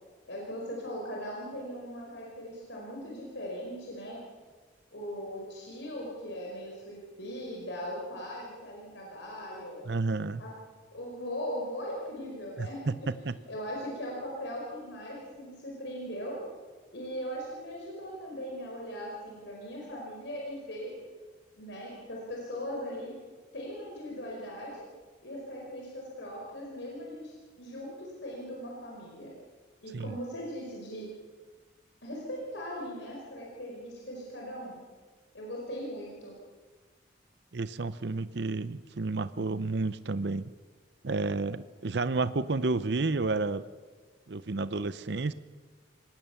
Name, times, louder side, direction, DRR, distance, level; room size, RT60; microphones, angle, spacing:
voice 1, 0.3-4.2 4.9-9.8 10.4-10.6 10.9-16.4 16.9-20.9 21.6-23.1 23.5-24.8 25.2-29.3 29.8-31.1 32.0-34.8 35.3-36.3, equal, 65° left, -2 dB, 5.0 m, -39 dB
voice 2, 9.9-10.4 12.6-13.0 13.3-13.4 29.9-30.2 37.5-40.5 41.0-43.6 44.3-45.3, right 3 dB, 60° right, 14 dB, 0.6 m, -31 dB
26.0 x 19.0 x 7.1 m, 1.4 s
head